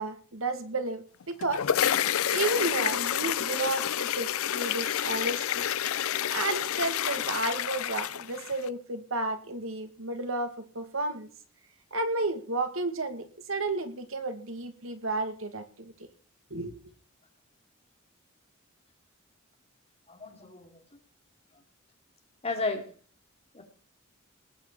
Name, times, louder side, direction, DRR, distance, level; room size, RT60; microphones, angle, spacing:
voice 1, 0.0-1.6 2.3-5.7 6.3-11.3 11.9-15.9 16.5-16.8, right 2 dB, 75° right, 8 dB, 2.2 m, -32 dB
sound 1, 1.2-8.7, left 10 dB, 85° left, 0.5 m, -29 dB
voice 2, 20.1-20.8 22.4-22.8 23.5-23.6, left 3 dB, 30° left, 4 dB, 2.9 m, -33 dB
19.0 x 6.3 x 7.3 m, 0.43 s
head